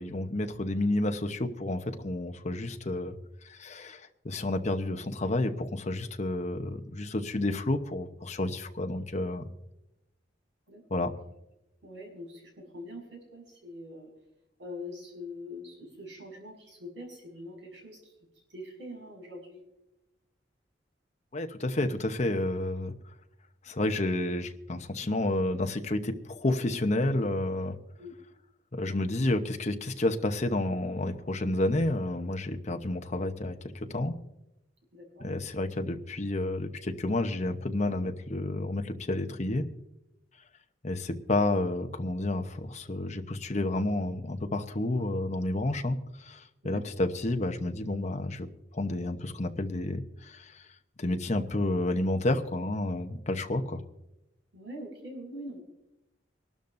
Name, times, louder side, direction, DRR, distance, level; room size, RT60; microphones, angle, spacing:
voice 1, 0.0-3.2 3.4-9.4 10.9-11.1 21.3-22.9 23.6-27.8 28.7-34.2 35.2-39.7 40.8-48.5 48.7-50.6 51.0-53.8, left 1 dB, 40° left, 5 dB, 0.9 m, -30 dB
voice 2, 10.7-11.0 11.8-14.1 14.6-18.0 18.5-19.6 28.0-28.1 34.9-35.3 46.6-46.8 54.5-55.6, left 1 dB, 80° right, 1 dB, 6.3 m, -43 dB
24.5 x 12.5 x 2.6 m, 0.91 s
head